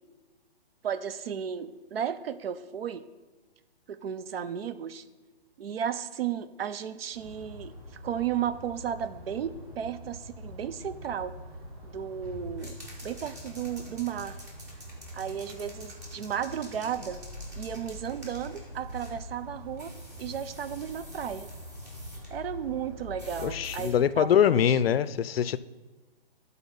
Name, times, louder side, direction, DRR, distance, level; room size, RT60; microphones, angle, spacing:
voice 1, 0.8-3.1 3.9-5.0 5.6-7.7 8.0-11.3 11.8-14.4 15.1-17.2 17.6-19.9 20.2-21.5 22.3-24.8, right 9 dB, 80° right, 13 dB, 0.6 m, -34 dB
sound 1, 7.1-23.9, equal, 35° right, 2.0 m, -44 dB
sound 2, 12.6-19.2 19.8-22.3 23.2-23.9, equal, 15° right, 0.9 m, -50 dB
voice 2, 23.4-25.6, left 9 dB, 75° left, 16 dB, 0.4 m, -23 dB
11.0 x 4.2 x 5.3 m, 1.2 s
hypercardioid pair, 180°, 30 cm